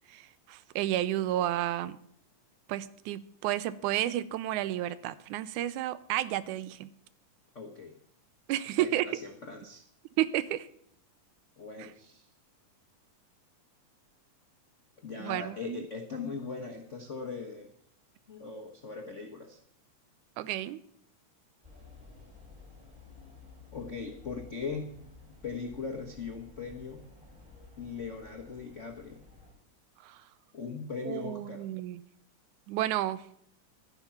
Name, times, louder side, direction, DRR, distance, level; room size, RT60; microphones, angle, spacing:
voice 1, 0.1-2.0 2.7-6.9 8.5-9.2 10.2-10.7 15.2-15.8 20.4-20.8 30.0-30.2 31.1-32.0 32.7-33.2, right 13 dB, 85° right, 16 dB, 2.1 m, -31 dB
voice 2, 7.5-8.0 8.7-9.8 11.6-12.3 15.0-17.7 18.3-19.6 23.7-24.9 25.4-27.0 27.8-29.2 30.5-31.7, left 5 dB, 80° left, 2 dB, 0.6 m, -39 dB
sound 1, 21.6-29.5, left 3 dB, 15° right, 3.7 m, -53 dB
12.0 x 10.5 x 5.7 m, 0.69 s
omnidirectional pair, 3.5 m